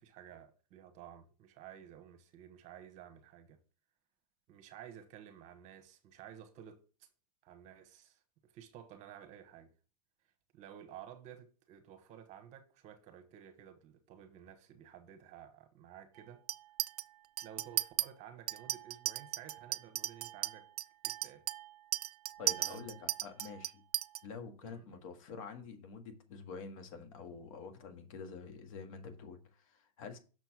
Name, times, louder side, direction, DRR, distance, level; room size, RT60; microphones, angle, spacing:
voice 1, 0.0-3.6 4.5-7.1 7.4-9.7 10.5-16.4 17.4-20.7 21.0-21.4 22.6-22.9 24.6-25.0, right 9 dB, 35° right, 1.3 m, -53 dB
Chink clink, 16.5-17.0 17.4-18.1 18.5-24.2, right 12 dB, 75° right, 0.5 m, -36 dB
voice 2, 22.4-23.7 24.2-30.2, left 5 dB, 60° left, 1.8 m, -47 dB
6.4 x 4.5 x 5.9 m
hypercardioid pair, 115°, 20 cm